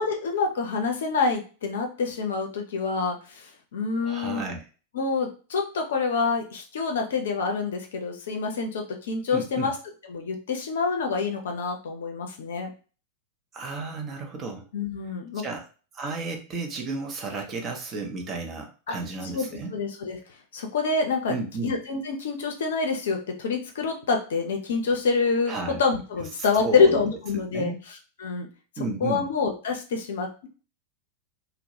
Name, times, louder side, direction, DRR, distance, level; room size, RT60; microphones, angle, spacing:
voice 1, 0.0-4.5 4.9-9.7 10.1-12.7 14.7-15.4 18.9-19.0 19.3-19.5 19.7-20.2 20.5-21.3 21.6-27.7 28.2-28.5 29.0-30.5, left 4 dB, 60° left, 3 dB, 0.5 m, -26 dB
voice 2, 4.0-4.6 9.3-9.7 13.5-14.6 15.3-15.6 15.9-19.7 21.3-21.7 25.5-25.8 26.4-27.0 27.5-27.8 28.8-29.3, right 3 dB, 30° right, 2 dB, 0.6 m, -33 dB
2.2 x 2.0 x 2.8 m, 0.36 s
figure-of-eight pair, 90°, 0 cm